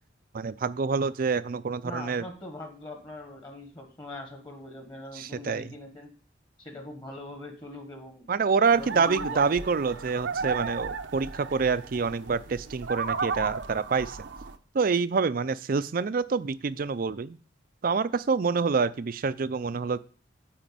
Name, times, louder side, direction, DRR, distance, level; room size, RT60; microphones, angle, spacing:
voice 1, 0.3-2.3 5.1-5.6 8.3-14.2 14.7-17.4 17.8-20.0, right 5 dB, 50° right, 16 dB, 0.4 m, -27 dB
voice 2, 1.8-6.1 6.6-8.3 8.7-10.0, left 2 dB, 25° left, 5 dB, 1.4 m, -42 dB
sound 1, 8.7-14.6, right 5 dB, 75° right, 0.8 m, -34 dB
9.2 x 4.4 x 7.5 m, 0.41 s
head